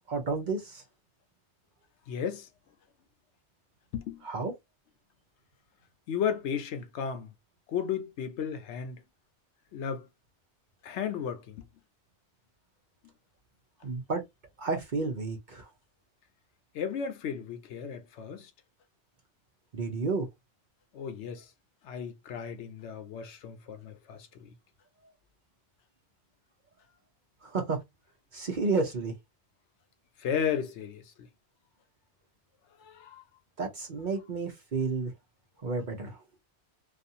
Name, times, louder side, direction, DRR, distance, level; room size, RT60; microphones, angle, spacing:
voice 1, 0.1-0.8 4.2-4.5 13.8-14.2 14.6-15.7 19.7-20.3 27.4-27.8 28.3-29.1 33.6-35.1 35.6-36.2, right 4 dB, 50° right, 0.8 m, -31 dB
voice 2, 2.1-2.5 3.9-4.2 6.1-7.3 7.7-9.0 9.7-10.1 10.8-11.7 16.7-18.5 20.9-21.5 21.8-24.5 30.2-31.3 32.8-33.2, left 7 dB, 80° left, 0.9 m, -34 dB
2.5 x 2.4 x 2.7 m
omnidirectional pair, 1.2 m